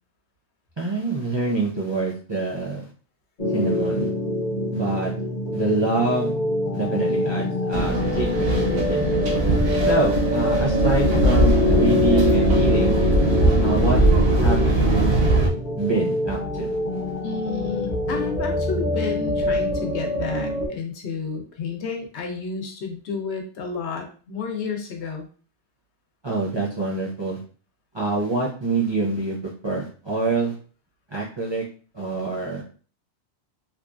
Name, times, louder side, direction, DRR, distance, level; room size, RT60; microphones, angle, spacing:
voice 1, 0.8-2.9 3.5-4.1 4.7-5.1 5.5-6.3 6.7-9.1 9.9-13.0 13.6-14.0 14.4-15.2 15.8-17.0 26.2-27.4 27.9-30.5 31.1-31.6 31.9-32.6, right 3 dB, 35° right, -4 dB, 0.4 m, -26 dB
sound 1, 3.4-20.7, left 2 dB, 50° left, 0.8 m, -25 dB
sound 2, 7.7-15.5, right 2 dB, 65° right, 0.8 m, -20 dB
voice 2, 17.2-25.3, left 5 dB, 80° left, 3 dB, 1.0 m, -31 dB
2.8 x 2.3 x 2.4 m, 0.39 s
omnidirectional pair, 1.1 m